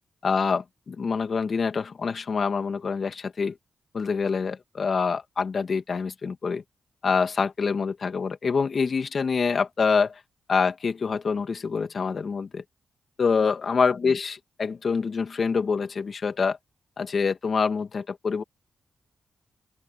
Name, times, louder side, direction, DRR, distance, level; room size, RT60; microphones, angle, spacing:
voice 1, 0.2-3.5 3.9-6.6 7.0-10.2 10.5-12.6 13.2-16.6 17.0-18.4, left 5 dB, 55° left, 2.6 m, -26 dB
open air
cardioid pair, 70°, 0 cm